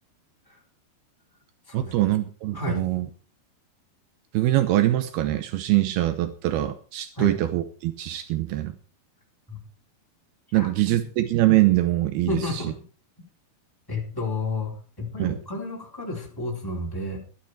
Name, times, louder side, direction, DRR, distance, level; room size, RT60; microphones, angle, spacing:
voice 1, 1.7-3.1 4.3-8.7 10.5-12.4 15.2-15.4, right 15 dB, 80° right, 10 dB, 2.9 m, -23 dB
voice 2, 12.3-12.8 13.9-17.2, left 2 dB, 5° left, -1 dB, 3.9 m, -31 dB
13.5 x 12.0 x 4.8 m, 0.38 s
omnidirectional pair, 4.5 m